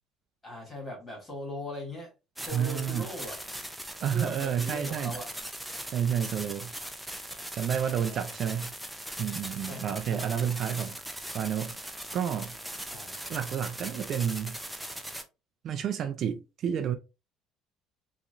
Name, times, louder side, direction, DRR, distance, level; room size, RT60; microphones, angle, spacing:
voice 1, 0.4-2.1 2.4-3.6 4.1-5.3 7.6-8.3 9.6-10.5 12.9-13.2, left 1 dB, 20° left, 2.3 m, -40 dB
sound 1, 2.4-15.2, right 1 dB, 5° right, 0.6 m, -40 dB
voice 2, 2.5-3.0 4.0-5.1 5.9-6.7 7.5-8.7 9.2-10.9 11.3-11.8 12.1-12.5 13.3-14.6 15.6-17.0, right 8 dB, 50° right, 0.4 m, -30 dB
3.9 x 3.0 x 2.6 m
cardioid pair, 125°, 0 cm